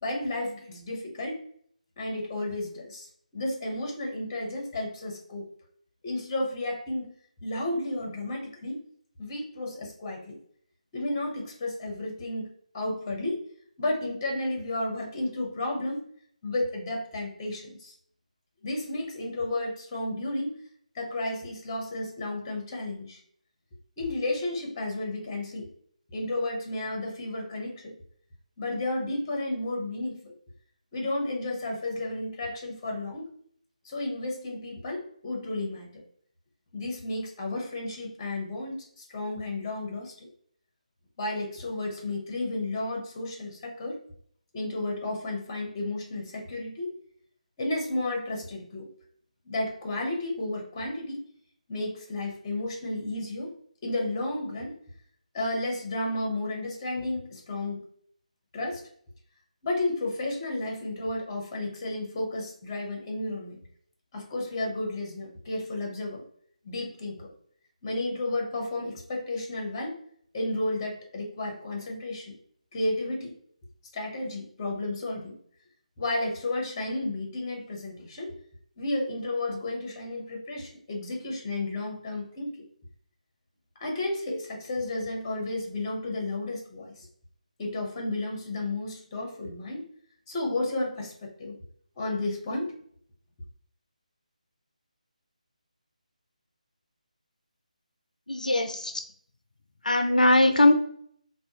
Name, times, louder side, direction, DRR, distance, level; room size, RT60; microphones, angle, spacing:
voice 1, 0.0-1.4 2.0-5.5 6.0-7.1 7.4-8.8 9.2-10.3 10.9-13.4 13.8-16.1 16.4-17.9 18.6-20.6 20.9-23.2 24.0-25.7 26.1-27.9 28.6-30.3 30.9-33.3 33.8-35.9 36.7-40.3 41.2-44.0 44.5-47.0 47.6-48.9 49.4-51.3 51.7-53.5 53.8-54.7 55.3-57.8 58.5-58.8 59.6-63.6 64.1-66.2 66.6-67.3 67.8-70.0 70.3-72.3 72.7-73.3 73.9-75.3 76.0-78.3 78.8-82.6 83.8-87.1 87.6-89.8 90.3-91.5 92.0-92.7, left 2 dB, 20° left, 0 dB, 0.8 m, -32 dB
voice 2, 98.3-99.0 99.8-100.7, left 1 dB, 75° left, 8 dB, 0.4 m, -21 dB
2.4 x 2.3 x 2.8 m, 0.62 s
figure-of-eight pair, 150°, 4 cm